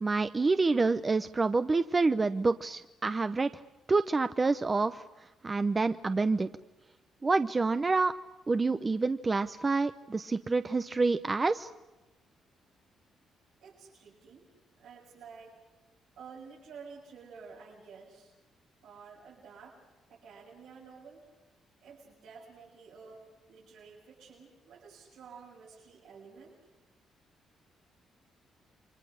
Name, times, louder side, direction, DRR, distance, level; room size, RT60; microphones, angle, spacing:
voice 1, 0.0-3.5 3.9-5.0 5.4-6.5 7.2-8.1 8.5-11.7, right 3 dB, 25° right, 10 dB, 0.8 m, -27 dB
voice 2, 13.6-14.5 14.8-15.6 16.2-18.3 18.8-19.8 20.1-21.3 21.8-23.2 23.5-26.6, right 5 dB, 85° right, -6 dB, 7.5 m, -51 dB
29.0 x 24.0 x 6.5 m, 1.1 s
cardioid pair, 90°, 0 cm